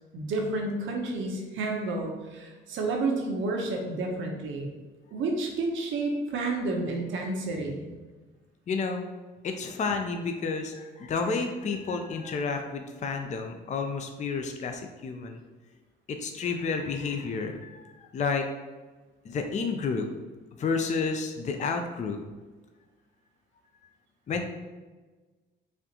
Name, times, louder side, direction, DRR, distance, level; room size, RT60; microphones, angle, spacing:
voice 1, 0.1-4.7 5.1-7.8, right 2 dB, 75° right, 1 dB, 0.7 m, -30 dB
voice 2, 8.7-9.0 9.4-15.4 16.1-18.5 19.2-20.1 20.6-22.2 24.3-24.5, left 4 dB, 35° left, 5 dB, 0.4 m, -30 dB
4.2 x 2.4 x 2.8 m, 1.3 s
cardioid pair, 90°, 20 cm